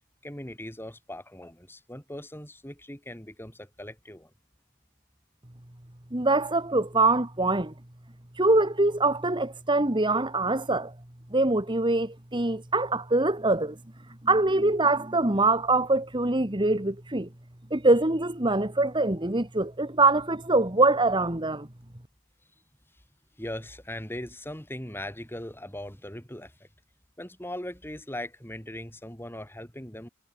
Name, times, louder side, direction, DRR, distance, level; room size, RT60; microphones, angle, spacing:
voice 1, 0.2-4.3 23.4-26.7 27.2-30.1, left 1 dB, 10° left, 7.1 m, -39 dB
voice 2, 6.1-7.7 8.4-10.9 11.3-13.8 14.2-17.3 17.7-21.7, right 2 dB, 20° right, 1.8 m, -24 dB
head